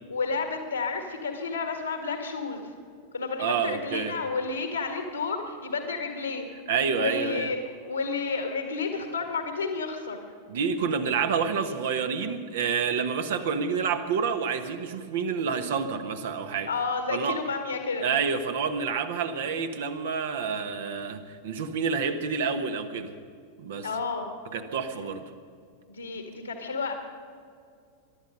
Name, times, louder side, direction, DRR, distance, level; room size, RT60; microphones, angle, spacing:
voice 1, 0.1-2.6 3.1-6.4 6.9-10.2 16.6-18.1 23.8-24.3 25.9-26.9, left 4 dB, 80° left, 4 dB, 1.8 m, -31 dB
voice 2, 3.4-4.2 6.7-7.5 10.5-16.7 17.1-17.4 18.0-23.1 23.6-23.9 24.5-25.2, right 6 dB, 55° right, 8 dB, 1.2 m, -28 dB
22.0 x 11.5 x 5.5 m, 2.3 s
figure-of-eight pair, 90°, 0 cm